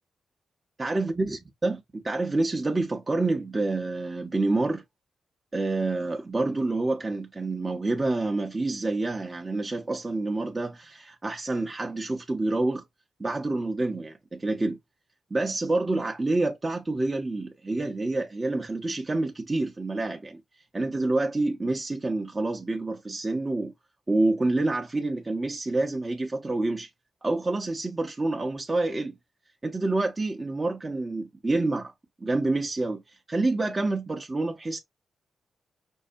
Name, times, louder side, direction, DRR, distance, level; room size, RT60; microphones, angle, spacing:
voice 1, 0.8-4.8 5.5-12.8 13.2-14.8 15.3-20.4 20.7-23.7 24.1-26.9 27.2-29.2 29.6-31.9 32.2-33.0 33.3-34.8, right 2 dB, 30° right, 0.8 m, -27 dB
5.5 x 2.1 x 2.5 m
hypercardioid pair, 40°, 0 cm